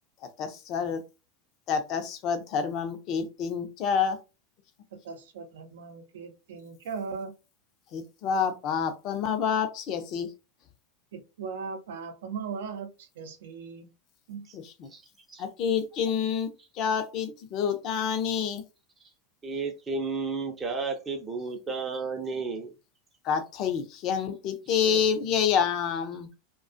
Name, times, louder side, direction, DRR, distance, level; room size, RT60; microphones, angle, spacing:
voice 1, 0.4-1.0 1.7-4.2 7.9-10.3 14.5-14.9 15.4-18.6 23.2-26.3, left 7 dB, 50° left, 8 dB, 0.5 m, -28 dB
voice 2, 5.0-7.3 11.1-13.9 14.3-14.5, right 5 dB, 70° right, 7 dB, 0.5 m, -38 dB
voice 3, 19.4-22.7, right 4 dB, 25° right, 2 dB, 0.5 m, -32 dB
2.3 x 2.2 x 2.5 m, 0.29 s
hypercardioid pair, 90°, 0 cm